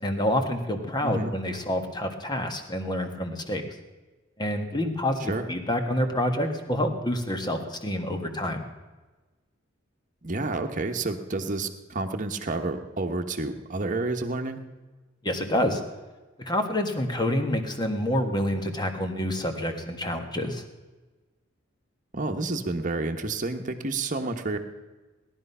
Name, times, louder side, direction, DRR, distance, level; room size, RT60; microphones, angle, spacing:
voice 1, 0.0-3.6 4.4-8.6 15.2-15.8 16.4-20.6, left 1 dB, 20° left, 5 dB, 1.6 m, -27 dB
voice 2, 1.0-1.3 5.2-5.5 10.2-14.6 22.1-24.6, right 2 dB, 40° right, 5 dB, 1.2 m, -30 dB
17.5 x 11.0 x 5.6 m, 1.2 s
head